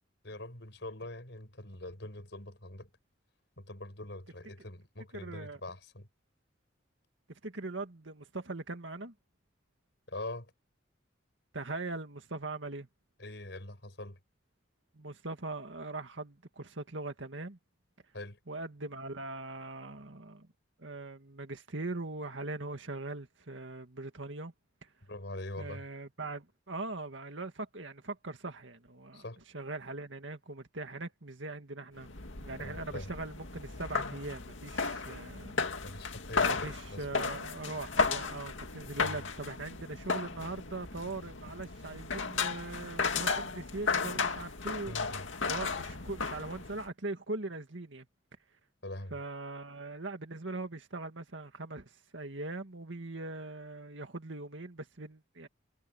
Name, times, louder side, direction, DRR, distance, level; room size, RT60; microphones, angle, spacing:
voice 1, 0.2-2.9 3.6-6.1 10.1-10.5 13.2-14.2 18.1-18.4 25.1-25.8 29.1-29.4 32.6-33.1 35.8-37.2 39.0-39.2 44.9-45.2 48.8-49.2, left 1 dB, 65° left, 5.3 m, -43 dB
voice 2, 5.1-5.6 7.3-9.1 11.5-12.9 14.9-17.6 18.5-20.5 20.8-24.5 24.8-24.9 25.6-29.2 29.5-32.1 32.4-35.6 36.5-45.0 45.5-48.1 49.1-55.5, right 2 dB, 75° right, 2.0 m, -41 dB
sound 1, 32.0-46.9, left 4 dB, 85° left, 2.3 m, -35 dB
head